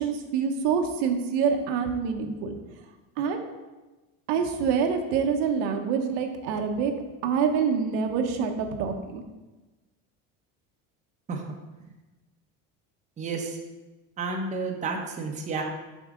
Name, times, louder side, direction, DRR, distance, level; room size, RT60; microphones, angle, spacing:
voice 1, 0.0-2.6 3.2-3.4 4.3-6.9 7.2-9.2, right 6 dB, 85° right, 4 dB, 1.0 m, -26 dB
voice 2, 13.2-13.6 14.2-15.6, right 4 dB, 20° right, 2 dB, 0.8 m, -31 dB
6.5 x 6.2 x 3.7 m, 1.1 s
cardioid pair, 155°, 36 cm